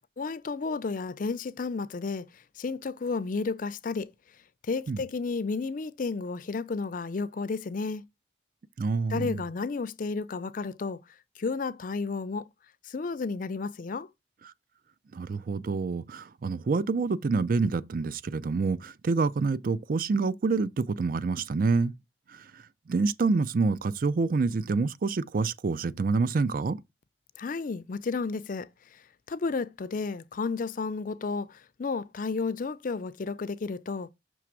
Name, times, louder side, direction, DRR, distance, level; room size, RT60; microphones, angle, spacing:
voice 1, 0.2-4.1 4.6-8.0 9.1-11.0 11.4-12.5 12.8-14.1 27.4-34.1, left 4 dB, 45° left, 0.4 m, -32 dB
voice 2, 8.8-9.4 15.1-21.9 22.3-22.6 22.9-26.8, right 4 dB, 50° right, 0.4 m, -27 dB
6.2 x 3.3 x 5.9 m
head